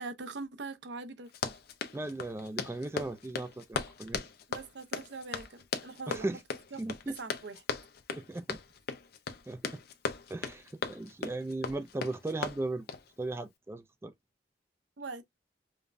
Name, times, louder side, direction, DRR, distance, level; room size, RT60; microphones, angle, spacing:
voice 1, 0.0-1.6 4.5-6.3 6.7-6.8 7.1-7.6 15.0-15.2, right 3 dB, 70° right, 0.6 m, -42 dB
Run, 1.3-13.1, left 5 dB, 60° left, 0.6 m, -38 dB
voice 2, 1.9-4.2 6.1-6.4 6.8-7.1 8.1-8.6 9.5-9.8 10.3-12.9 13.2-14.1, right 2 dB, 15° right, 0.3 m, -37 dB
5.1 x 2.1 x 2.5 m
head